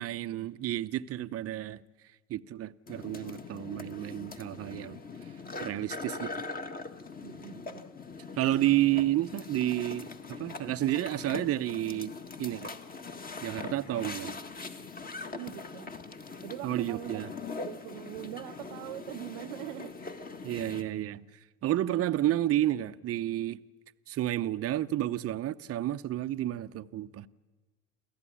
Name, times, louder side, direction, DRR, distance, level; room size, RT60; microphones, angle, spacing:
voice 1, 0.0-1.8 2.3-5.0 5.6-6.4 8.4-12.7 13.4-14.4 16.6-17.3 20.4-21.3 21.6-23.6 24.1-27.3, right 13 dB, 40° right, 0.8 m, -31 dB
sound 1, 2.9-20.8, left 4 dB, 20° left, 1.6 m, -42 dB
voice 2, 7.2-7.9 14.2-14.4 15.2-16.0 16.4-17.3 17.6-20.0, right 19 dB, 75° right, 0.6 m, -43 dB
28.5 x 13.5 x 10.0 m
supercardioid pair, 110°, 39 cm